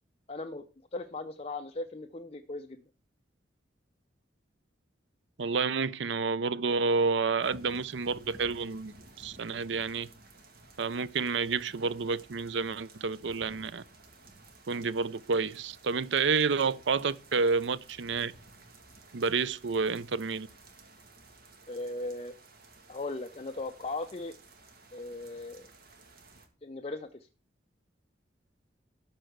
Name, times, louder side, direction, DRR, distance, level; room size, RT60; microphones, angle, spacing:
voice 1, 0.3-0.6 0.9-2.8 21.7-22.3 22.9-24.4 24.9-25.7 26.6-27.3, left 2 dB, 35° left, 0.6 m, -38 dB
voice 2, 5.4-10.1 10.8-13.8 14.7-18.3 19.1-20.5, right 4 dB, 75° right, 0.6 m, -29 dB
sound 1, 7.4-26.5, right 2 dB, 55° right, 2.0 m, -55 dB
13.0 x 4.5 x 7.9 m
head